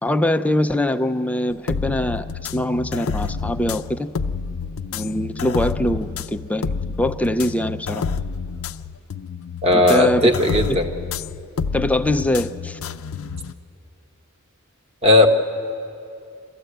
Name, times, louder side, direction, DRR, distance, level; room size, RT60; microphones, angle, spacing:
voice 1, 0.0-2.3 2.5-4.1 4.9-8.0 9.9-10.3 10.7-10.8 11.7-12.8, left 1 dB, 5° left, 7 dB, 0.4 m, -23 dB
sound 1, 1.5-13.5, left 5 dB, 70° left, 0.5 m, -29 dB
voice 2, 9.6-10.9 15.0-15.3, left 2 dB, 30° right, 4 dB, 1.3 m, -16 dB
28.0 x 14.0 x 8.0 m, 2.6 s
head